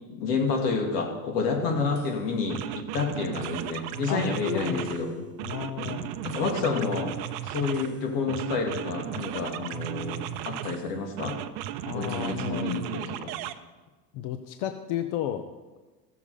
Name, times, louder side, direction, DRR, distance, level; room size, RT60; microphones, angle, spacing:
voice 1, 0.1-5.1 5.8-6.0 6.2-7.1 7.4-11.4 11.9-13.3, left 4 dB, 80° left, 2 dB, 2.5 m, -29 dB
sound 1, 1.9-2.1 2.5-5.0 5.4-7.9 8.3-10.8 11.2-13.5, right 11 dB, 50° right, 0.7 m, -35 dB
Marimba xylophone, 4.4-6.2, left 1 dB, 35° left, 1.3 m, -40 dB
voice 2, 4.5-6.1 6.6-7.1 11.8-12.7 14.1-15.5, left 11 dB, 50° left, 8 dB, 0.8 m, -34 dB
14.5 x 7.2 x 5.0 m, 1.2 s
supercardioid pair, 135°, 47 cm